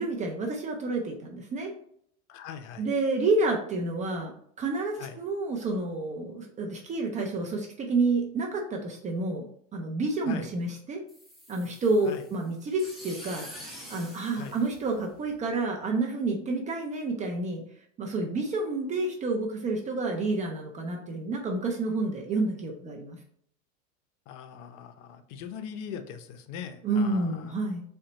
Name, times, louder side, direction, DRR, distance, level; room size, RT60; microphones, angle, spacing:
voice 1, 0.0-1.7 2.8-11.0 11.5-17.6 18.0-23.2 26.8-27.8, right 3 dB, 20° right, 1 dB, 0.3 m, -29 dB
voice 2, 2.3-2.8 5.0-5.2 10.3-10.5 12.1-12.3 14.4-14.6 24.3-27.5, left 7 dB, 65° left, 9 dB, 0.6 m, -41 dB
sound 1, 11.1-15.4, equal, ahead, 0.8 m, -46 dB
3.9 x 2.2 x 3.8 m, 0.66 s
hypercardioid pair, 110°, 41 cm